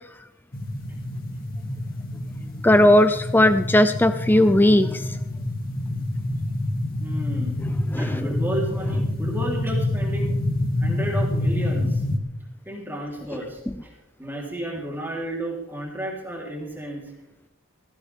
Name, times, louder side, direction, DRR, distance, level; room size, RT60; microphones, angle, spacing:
sound 1, 0.5-12.2, left 1 dB, 45° left, 2.4 m, -27 dB
voice 1, 2.6-5.1 7.9-8.3, left 1 dB, 10° left, 10 dB, 0.4 m, -17 dB
voice 2, 7.0-7.6 8.0-10.4 10.8-12.0 12.7-13.9 14.2-17.0, right 1 dB, 10° right, -2 dB, 3.6 m, -32 dB
19.0 x 16.5 x 3.6 m, 0.85 s
head